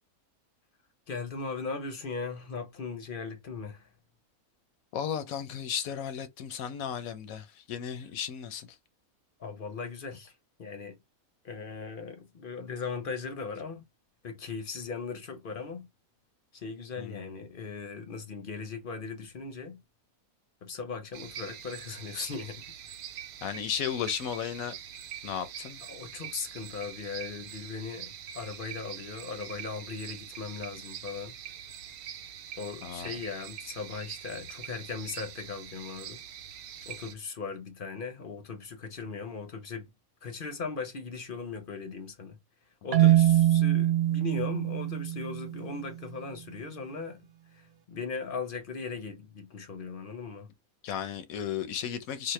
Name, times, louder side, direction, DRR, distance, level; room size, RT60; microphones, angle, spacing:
voice 1, 1.1-3.9 9.4-10.3 10.6-11.0 11.4-13.8 14.2-15.9 16.5-19.8 20.6-22.6 25.9-31.3 32.6-36.2 36.9-39.9 40.2-42.4 42.8-47.2 47.5-50.5, left 4 dB, 50° left, 0.7 m, -38 dB
voice 2, 4.9-8.8 17.0-17.4 23.4-24.7 25.2-25.8 32.8-33.1 43.0-43.2 50.8-52.3, left 8 dB, 80° left, 1.1 m, -35 dB
sound 1, 21.1-37.1, right 9 dB, 80° right, 1.1 m, -44 dB
Marimba xylophone, 42.9-45.9, right 13 dB, 65° right, 0.6 m, -24 dB
4.1 x 2.1 x 3.1 m
omnidirectional pair, 1.5 m